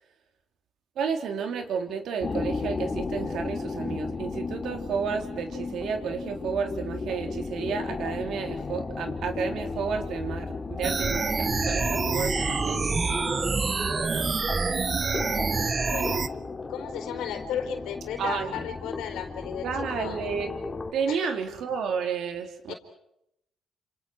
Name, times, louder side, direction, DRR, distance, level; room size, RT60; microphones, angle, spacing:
voice 1, 1.0-13.3 14.1-14.3 18.2-18.5 19.6-20.5 20.9-22.7, right 6 dB, 75° right, 5 dB, 3.8 m, -31 dB
sound 1, 2.2-20.9, left 4 dB, 30° left, 2.6 m, -35 dB
sound 2, 10.8-16.3, right 4 dB, 35° right, 1.0 m, -27 dB
voice 2, 13.7-14.4 15.8-16.2 16.7-20.2 21.1-21.3 22.7-22.8, left 8 dB, 90° left, 6 dB, 4.3 m, -35 dB
30.0 x 27.5 x 4.9 m, 0.78 s
cardioid pair, 90°, 0 cm